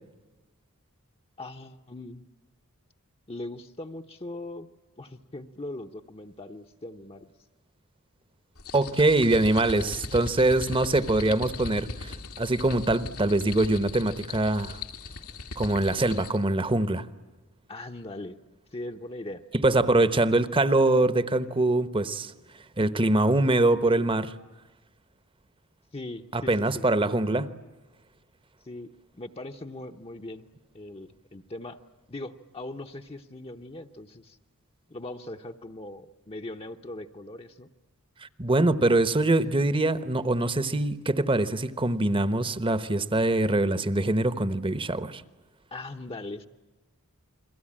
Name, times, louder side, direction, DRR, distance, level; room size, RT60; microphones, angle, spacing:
voice 1, 1.4-2.2 3.3-4.7 5.0-7.3 17.7-18.4 18.7-19.4 19.8-20.0 25.9-26.8 28.6-30.5 30.7-31.8 32.1-34.4 34.9-37.7 45.7-46.5, left 2 dB, 25° left, 0.9 m, -40 dB
sound 1, 8.6-16.4, left 3 dB, 80° left, 2.0 m, -39 dB
voice 2, 8.7-14.8 15.6-17.1 19.5-22.3 22.8-24.3 26.3-27.5 38.2-45.2, right 2 dB, 25° right, 1.0 m, -23 dB
30.0 x 22.5 x 8.8 m
head